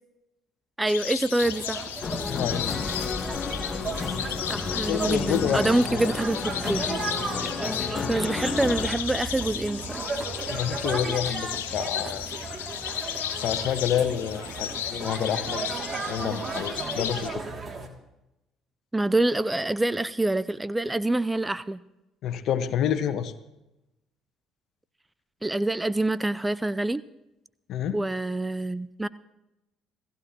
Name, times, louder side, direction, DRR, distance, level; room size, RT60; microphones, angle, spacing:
voice 1, 0.8-1.9 4.5-6.9 8.1-10.1 18.9-21.8 25.4-27.0 27.9-29.1, right 2 dB, 15° right, 17 dB, 0.5 m, -26 dB
sound 1, 0.9-17.3, left 10 dB, 85° left, 1.1 m, -34 dB
sound 2, 1.4-17.9, right 3 dB, 35° right, 2.6 m, -35 dB
sound 3, 2.0-8.9, left 4 dB, 35° left, 1.4 m, -32 dB
voice 2, 2.3-2.6 4.9-6.0 10.5-12.2 13.4-15.6 16.0-17.4 22.2-23.3 27.7-28.0, left 9 dB, 60° left, 10 dB, 1.4 m, -28 dB
28.0 x 16.0 x 3.0 m, 0.93 s
hypercardioid pair, 55°, 0 cm